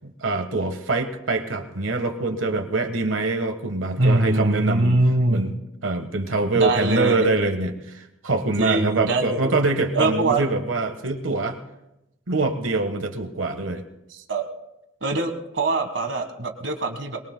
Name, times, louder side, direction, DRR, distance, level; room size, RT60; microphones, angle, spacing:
voice 1, 0.0-5.0 5.3-5.5 5.8-11.6 12.3-13.8, right 3 dB, 85° right, 7 dB, 1.3 m, -24 dB
voice 2, 4.0-5.4 6.5-7.2 8.6-9.6 9.9-10.4 14.1-14.4 15.0-17.2, right 2 dB, 65° right, 5 dB, 1.5 m, -23 dB
22.0 x 22.0 x 2.2 m, 0.90 s
head